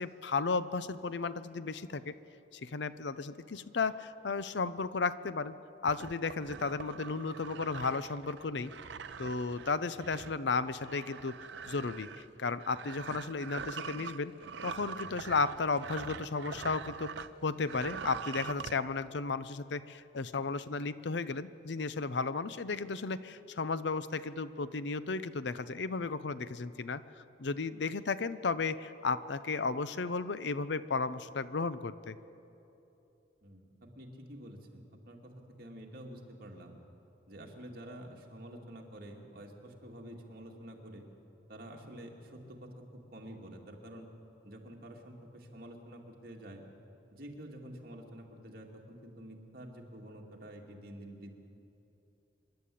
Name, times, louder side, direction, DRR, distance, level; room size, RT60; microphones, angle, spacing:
voice 1, 0.0-2.1 2.5-5.5 5.8-8.7 9.2-11.4 11.7-14.3 14.6-27.0 27.4-32.2, left 4 dB, 70° left, 14 dB, 0.6 m, -34 dB
sound 1, 5.9-17.3 17.6-18.8, right 6 dB, 70° right, 0.6 m, -44 dB
voice 2, 33.4-36.8 37.3-41.1 41.5-44.1 44.4-46.7 47.1-51.4, right 1 dB, 50° right, 1 dB, 2.3 m, -48 dB
26.5 x 11.5 x 8.5 m, 2.9 s
head